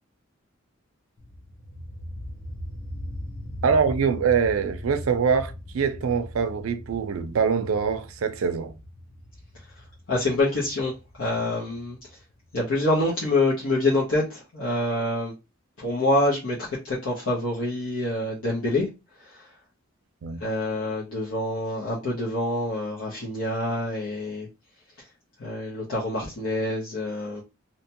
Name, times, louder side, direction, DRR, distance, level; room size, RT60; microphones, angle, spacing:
sound 1, 1.2-12.7, left 1 dB, 45° left, 0.5 m, -39 dB
voice 1, 3.6-8.7 20.2-20.4, right 6 dB, 85° right, 0.4 m, -24 dB
voice 2, 10.1-10.9 11.2-12.0 12.5-15.3 15.8-18.9 19.3-19.5 20.4-24.5 25.4-27.4, left 2 dB, 85° left, 0.8 m, -26 dB
2.8 x 2.2 x 2.8 m
head